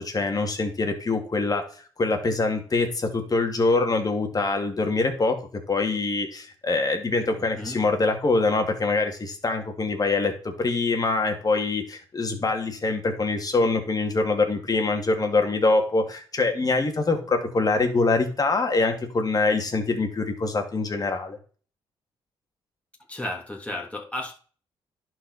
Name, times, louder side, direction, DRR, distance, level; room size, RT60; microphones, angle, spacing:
voice 1, 0.0-1.6 2.0-5.4 5.7-21.4, left 3 dB, 35° left, 4 dB, 2.3 m, -24 dB
voice 2, 7.4-7.8 23.1-24.3, left 1 dB, 10° left, -1 dB, 3.1 m, -33 dB
11.0 x 4.7 x 4.2 m, 0.41 s
supercardioid pair, 60°, 11 cm